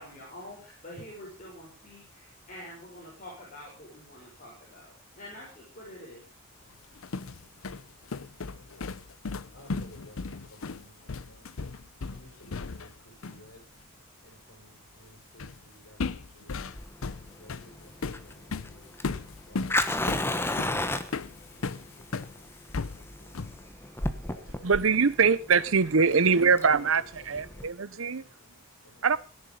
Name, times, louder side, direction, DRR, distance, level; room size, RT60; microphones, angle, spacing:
voice 1, 0.0-6.2, left 1 dB, 40° left, 6.1 m, -46 dB
sound 1, 6.8-13.0 13.2-13.5 15.4-15.6 16.0-22.3 22.7-23.7, left 4 dB, 75° left, 0.7 m, -36 dB
voice 2, 8.5-9.0 9.5-11.5 12.0-13.7 14.2-16.7 17.0-19.0 21.5-23.7 24.2-25.3 26.0-29.2, left 1 dB, 60° left, 7.6 m, -55 dB
Fire, 16.6-27.7, left 1 dB, 10° left, 1.2 m, -33 dB
voice 3, 24.6-28.2 29.0-29.2, right 5 dB, 70° right, 0.8 m, -23 dB
18.0 x 10.5 x 5.4 m
head